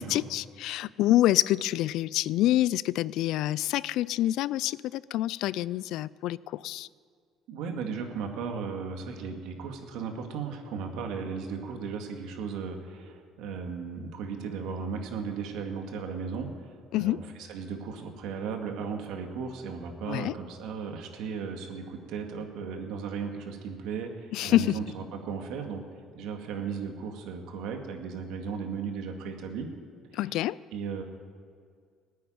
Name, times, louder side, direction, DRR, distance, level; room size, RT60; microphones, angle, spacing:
voice 1, 0.0-6.4 6.6-6.9 16.9-17.2 20.1-20.3 24.3-24.7 30.1-30.6, left 14 dB, 75° left, 21 dB, 0.3 m, -26 dB
voice 2, 7.5-25.8 26.2-29.7 30.1-30.4 30.7-31.0, right 5 dB, 80° right, 4 dB, 2.1 m, -36 dB
16.5 x 9.4 x 9.3 m, 2.1 s
cardioid pair, 95°, 0 cm